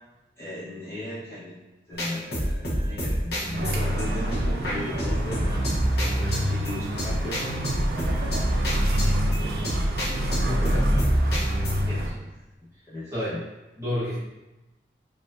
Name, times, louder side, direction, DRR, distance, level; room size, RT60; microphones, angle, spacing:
voice 1, 0.4-1.5 1.9-7.4 9.2-9.5 12.9-13.4, left 2 dB, 15° left, -11 dB, 1.1 m, -37 dB
sound 1, 1.9-11.9, equal, 65° left, 0.9 m, -27 dB
sound 2, 3.5-12.1, right 1 dB, 60° right, 0.4 m, -28 dB
voice 2, 6.2-6.7 10.4-10.9 11.9-12.2 13.1-13.4 13.8-14.2, equal, 20° right, -11 dB, 1.1 m, -31 dB
4.5 x 2.6 x 2.6 m, 1.1 s
head